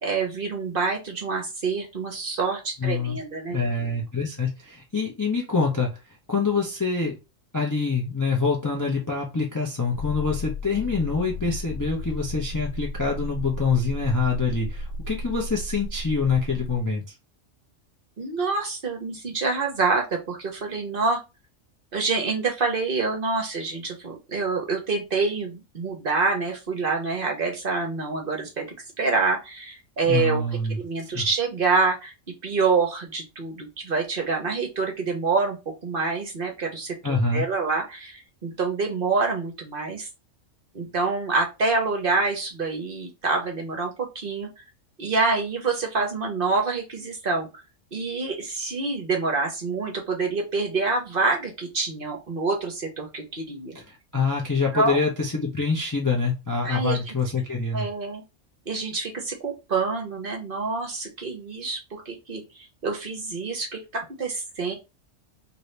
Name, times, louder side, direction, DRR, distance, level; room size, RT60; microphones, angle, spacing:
voice 1, 0.0-3.6 18.2-21.2 21.9-28.6 29.0-30.4 30.8-32.1 32.4-35.6 35.8-40.1 40.7-44.5 45.0-47.5 47.9-53.7 54.7-55.0 56.6-57.1 57.7-58.2 58.7-62.4 62.8-64.7, right 4 dB, 50° right, 2 dB, 0.9 m, -26 dB
voice 2, 2.8-3.2 3.5-5.9 6.3-7.1 7.5-17.0 30.1-30.8 31.1-31.2 37.0-37.4 53.9-57.9, left 4 dB, 25° left, -1 dB, 0.5 m, -25 dB
sound 1, 9.9-16.8, left 2 dB, 65° left, 1.0 m, -34 dB
2.7 x 2.7 x 3.2 m, 0.26 s
omnidirectional pair, 1.3 m